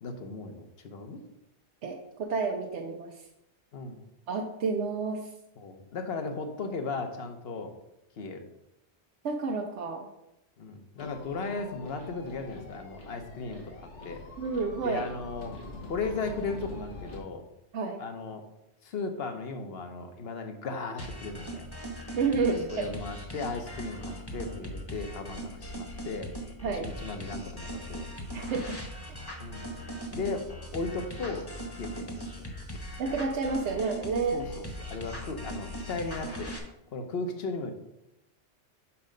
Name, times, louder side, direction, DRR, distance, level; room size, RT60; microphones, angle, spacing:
voice 1, 0.0-1.2 3.7-4.0 5.6-7.7 8.2-8.5 10.6-13.7 14.0-14.2 14.8-15.5 15.9-17.4 18.0-18.4 18.8-21.7 22.5-26.3 26.6-28.1 29.4-29.8 30.1-31.5 31.8-32.1 32.4-32.5 34.3-36.5 36.9-37.7, left 3 dB, 60° left, 6 dB, 1.1 m, -36 dB
voice 2, 1.8-3.2 4.3-5.3 9.2-10.1 14.4-15.1 17.7-18.0 22.2-22.9 26.6-26.9 28.3-28.8 29.1-29.2 33.0-34.4, right 4 dB, 75° right, 1 dB, 1.0 m, -30 dB
sound 1, 11.0-17.2, left 2 dB, 85° left, 1.6 m, -44 dB
sound 2, 21.0-36.6, equal, 20° left, 1.1 m, -39 dB
5.6 x 5.4 x 5.1 m, 0.87 s
omnidirectional pair, 1.2 m